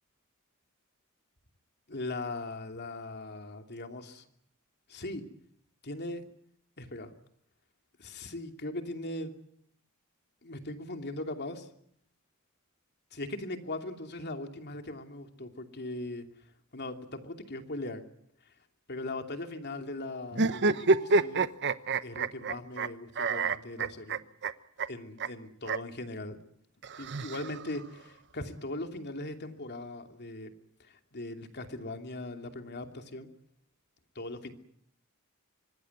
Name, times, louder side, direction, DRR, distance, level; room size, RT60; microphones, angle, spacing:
voice 1, 1.9-4.2 4.9-5.2 5.8-6.2 6.8-7.1 8.0-9.3 10.4-11.7 13.1-16.2 16.7-18.0 18.9-21.5 22.0-24.2 24.9-26.4 27.0-30.5 30.8-33.3 34.1-34.5, left 2 dB, 50° left, 5 dB, 2.8 m, -39 dB
sound 1, 20.3-22.9 23.2-24.5 24.8-24.9 25.2-25.3 25.6-25.8 26.8-27.8, right 3 dB, 55° right, 1.0 m, -27 dB
25.5 x 19.5 x 9.4 m, 0.71 s
head